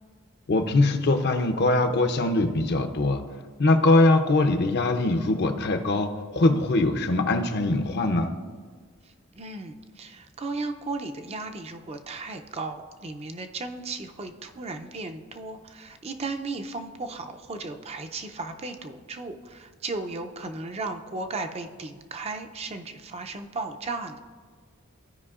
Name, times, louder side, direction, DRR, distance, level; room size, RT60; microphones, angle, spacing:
voice 1, 0.5-3.2 3.6-8.3, left 2 dB, 50° left, 6 dB, 0.6 m, -22 dB
voice 2, 9.0-24.2, right 3 dB, 30° right, 6 dB, 0.4 m, -35 dB
14.0 x 5.1 x 2.4 m, 1.5 s
head